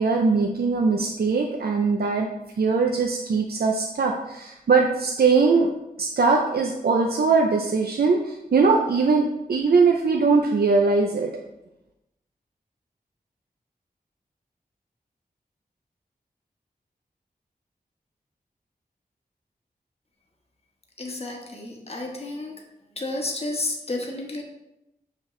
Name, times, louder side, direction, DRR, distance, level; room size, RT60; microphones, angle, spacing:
voice 1, 0.0-2.3 2.6-5.7 6.0-11.3, right 4 dB, 75° right, 1 dB, 0.6 m, -21 dB
voice 2, 21.0-22.6 22.9-24.4, left 2 dB, 40° left, 0 dB, 1.2 m, -31 dB
6.3 x 5.7 x 3.1 m, 0.91 s
wide cardioid pair, 75°, 16 cm